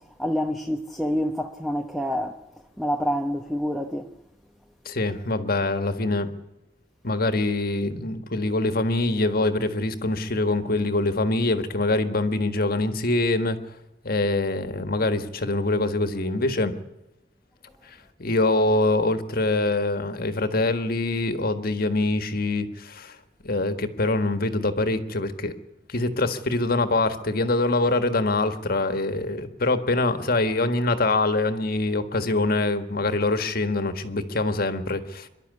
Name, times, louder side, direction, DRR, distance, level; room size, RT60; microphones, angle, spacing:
voice 1, 0.2-2.4 2.8-4.1 4.9-5.0, equal, ahead, 1.0 m, -27 dB
voice 2, 4.8-6.3 7.0-13.6 14.0-16.8 17.8-23.1 23.4-25.5 25.9-35.3, left 2 dB, 55° left, 1.7 m, -24 dB
25.0 x 12.0 x 9.7 m
head